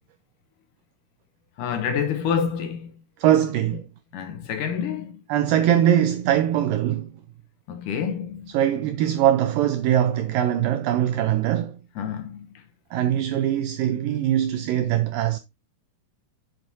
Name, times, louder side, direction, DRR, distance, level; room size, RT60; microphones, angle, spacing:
voice 1, 1.6-2.9 4.1-5.2 7.7-8.5 12.0-12.6, left 7 dB, 70° left, 2.2 m, -28 dB
voice 2, 3.2-3.9 5.3-7.1 8.5-11.8 12.9-15.4, right 11 dB, 85° right, 2.0 m, -22 dB
8.6 x 7.9 x 2.6 m
omnidirectional pair, 4.6 m